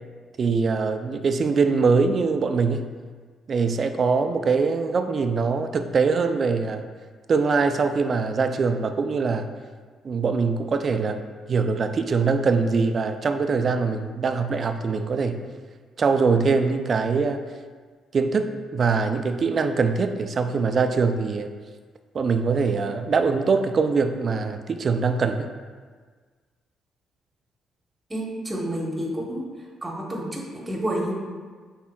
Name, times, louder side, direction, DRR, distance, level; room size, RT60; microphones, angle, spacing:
voice 1, 0.4-2.9 3.5-6.9 7.3-9.5 10.0-11.2 11.5-15.4 16.0-17.4 18.1-21.5 22.1-25.5, right 4 dB, 45° right, 8 dB, 0.3 m, -23 dB
voice 2, 28.1-29.5 29.8-31.1, right 1 dB, 20° right, -2 dB, 1.0 m, -29 dB
5.7 x 3.5 x 2.3 m, 1.5 s
cardioid pair, 90°, 0 cm